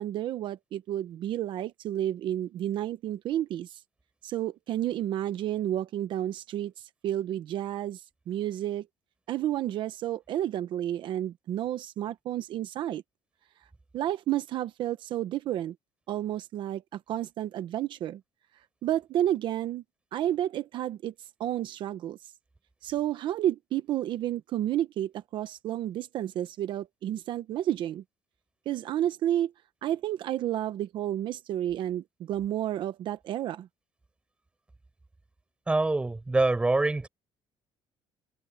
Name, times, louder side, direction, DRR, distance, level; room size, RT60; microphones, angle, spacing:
voice 1, 0.0-3.8 4.2-6.7 7.0-8.0 8.3-8.9 9.3-13.0 13.9-15.7 16.1-18.2 18.8-19.8 20.1-21.1 21.4-22.2 22.8-28.0 28.7-29.5 29.8-33.7, right 12 dB, 50° right, 0.9 m, -31 dB
voice 2, 35.7-37.1, right 2 dB, 10° right, 4.8 m, -25 dB
open air
cardioid pair, 170°, 10 cm